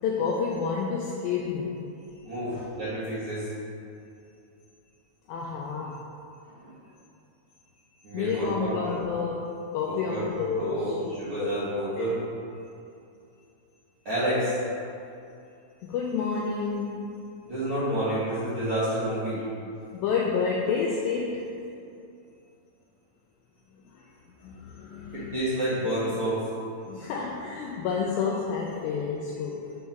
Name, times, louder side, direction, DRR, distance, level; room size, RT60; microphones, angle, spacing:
voice 1, 0.0-1.8 2.5-2.6 5.3-6.0 8.1-10.9 11.4-11.5 12.0-12.1 15.8-17.1 19.9-21.5 23.9-24.0 24.4-25.3 26.8-29.6, left 5 dB, 90° left, -2 dB, 2.0 m, -29 dB
voice 2, 2.2-3.5 6.4-6.7 8.0-9.0 9.8-12.2 14.0-14.6 17.5-19.4 25.1-26.4, right 1 dB, 60° right, -13 dB, 1.4 m, -29 dB
6.4 x 3.7 x 5.8 m, 2.6 s
omnidirectional pair, 4.7 m